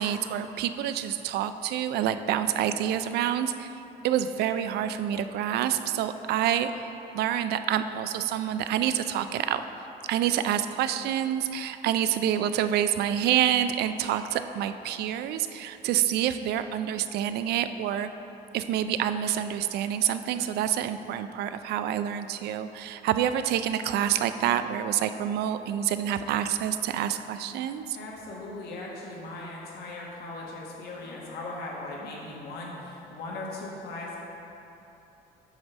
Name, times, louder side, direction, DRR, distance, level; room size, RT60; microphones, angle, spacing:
voice 1, 0.0-3.7 4.0-6.9 7.1-9.6 10.1-18.1 18.5-28.0, right 10 dB, 75° right, 10 dB, 0.4 m, -27 dB
voice 2, 27.9-34.2, left 2 dB, 70° left, -4 dB, 1.5 m, -38 dB
9.4 x 3.3 x 6.0 m, 3.0 s
cardioid pair, 110°, 17 cm